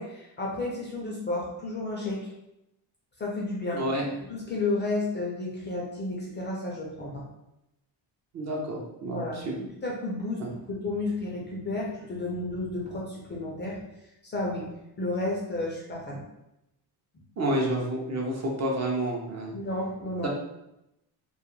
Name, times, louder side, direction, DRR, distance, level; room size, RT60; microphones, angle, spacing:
voice 1, 0.0-2.3 3.2-3.8 4.3-7.3 9.0-9.5 9.8-13.8 14.2-14.7 15.0-16.2 19.5-20.3, left 2 dB, 25° left, -4 dB, 0.4 m, -32 dB
voice 2, 3.7-4.2 8.3-9.5 10.4-10.5 17.4-19.5 20.2-20.3, right 1 dB, 40° right, -1 dB, 0.5 m, -29 dB
2.3 x 2.1 x 3.0 m, 0.86 s
cardioid pair, 140°, 44 cm